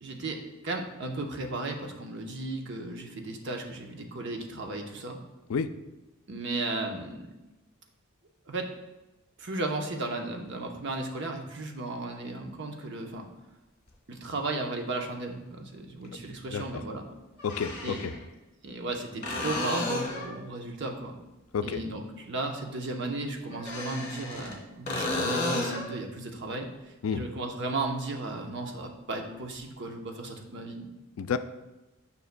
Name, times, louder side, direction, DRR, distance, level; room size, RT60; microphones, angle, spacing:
voice 1, 0.0-5.2 6.3-7.3 8.5-8.7 9.4-13.3 14.1-17.0 17.8-18.0 18.6-21.1 21.6-30.9, right 2 dB, 55° right, 3 dB, 0.8 m, -35 dB
sound 1, 13.9-14.0 16.0-16.1 17.4-18.2 19.2-20.4 23.5-24.6 24.9-25.9 29.6-29.7, left 2 dB, 35° left, 1.6 m, -32 dB
voice 2, 16.4-16.8 17.4-18.1 21.5-21.8 27.0-27.2 31.2-31.4, left 6 dB, 75° left, 11 dB, 0.4 m, -30 dB
9.3 x 5.3 x 2.2 m, 1.0 s
head